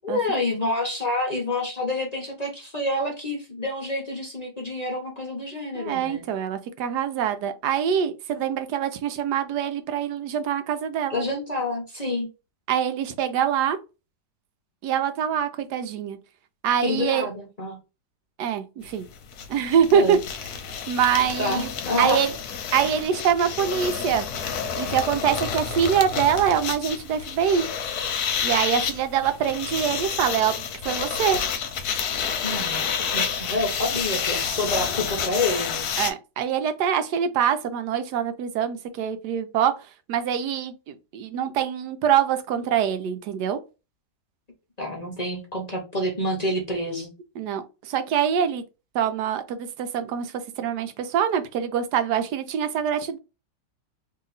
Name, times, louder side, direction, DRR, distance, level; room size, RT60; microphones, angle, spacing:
voice 1, 0.0-6.2 11.1-12.3 16.8-17.8 19.9-20.2 21.4-22.2 32.4-35.8 44.8-47.1, left 1 dB, 40° left, 0.5 m, -28 dB
voice 2, 5.7-11.2 12.7-13.8 14.8-16.2 16.6-17.3 18.4-19.1 19.5-20.2 20.9-21.7 22.0-22.3 22.7-24.3 24.8-27.6 28.4-31.4 36.0-39.7 40.1-43.6 47.4-48.6 48.9-53.2, right 8 dB, 75° right, 1.1 m, -24 dB
sound 1, 18.9-19.0 19.1-36.1, left 7 dB, 70° left, 1.1 m, -29 dB
2.9 x 2.8 x 3.8 m
omnidirectional pair, 1.9 m